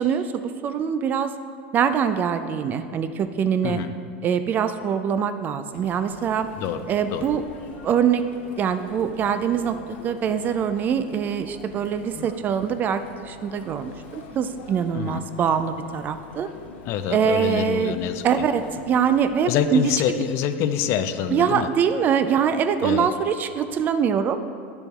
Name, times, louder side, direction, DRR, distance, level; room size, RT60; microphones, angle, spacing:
voice 1, 0.0-1.3 1.7-3.8 4.2-6.5 6.9-7.4 7.8-8.2 8.6-16.5 17.1-17.9 18.2-19.8 21.3-24.4, right 7 dB, 30° right, 10 dB, 0.3 m, -23 dB
voice 2, 3.6-3.9 6.6-6.9 7.1-7.3 14.9-15.2 16.9-18.5 19.5-21.7 22.8-23.1, left 9 dB, 45° left, 10 dB, 0.4 m, -26 dB
Chatter, 5.7-20.0, left 4 dB, 75° left, 0.8 m, -44 dB
10.0 x 6.8 x 2.3 m, 2.3 s
supercardioid pair, 125°, 6 cm